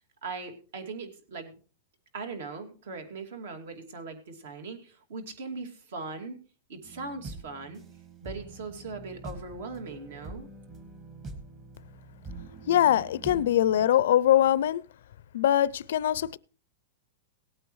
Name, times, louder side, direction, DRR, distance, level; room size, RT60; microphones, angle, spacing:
voice 1, 0.2-1.6 2.1-6.4 6.7-7.8 8.2-10.5, right 4 dB, 65° right, 2.5 m, -39 dB
sound 1, 6.8-13.9, right 3 dB, 25° right, 1.6 m, -45 dB
voice 2, 12.7-14.8 15.3-16.4, left 11 dB, 65° left, 0.4 m, -22 dB
18.5 x 8.9 x 3.1 m
supercardioid pair, 165°, 0 cm